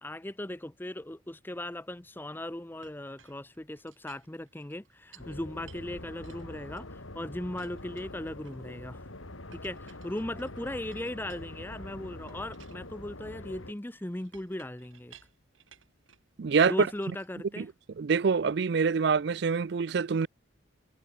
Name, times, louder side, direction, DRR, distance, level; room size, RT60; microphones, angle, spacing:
voice 1, 0.0-9.1 9.5-15.1 16.6-17.7, left 1 dB, 10° left, 0.6 m, -38 dB
Chink clink, 2.8-5.4 5.7-7.2 7.6-8.8 9.5-11.8 12.3-16.3 16.8-18.0, right 7 dB, 75° right, 6.7 m, -60 dB
sound 1, 5.2-13.7, left 2 dB, 85° left, 3.5 m, -45 dB
voice 2, 16.4-16.7 17.6-17.7 18.0-20.3, right 5 dB, 55° right, 0.4 m, -25 dB
head